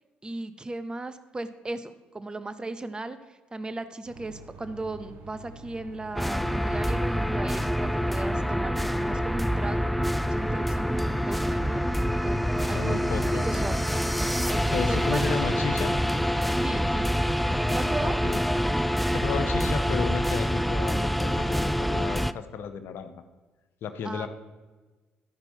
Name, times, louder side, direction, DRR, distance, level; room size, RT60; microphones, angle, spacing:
voice 1, 0.2-9.9 10.2-11.9 12.2-15.4 16.6-17.2 17.7-18.2 24.0-24.3, right 2 dB, 20° right, 12 dB, 0.7 m, -37 dB
sound 1, 4.0-18.0, right 3 dB, 65° right, 1.5 m, -46 dB
sound 2, 6.2-22.3, equal, ahead, 0.3 m, -26 dB
voice 2, 12.7-13.5 14.7-16.0 18.0-18.4 18.9-23.1 23.8-24.3, left 6 dB, 65° left, 9 dB, 0.7 m, -33 dB
12.5 x 5.4 x 4.4 m, 1.3 s
supercardioid pair, 60°, 4 cm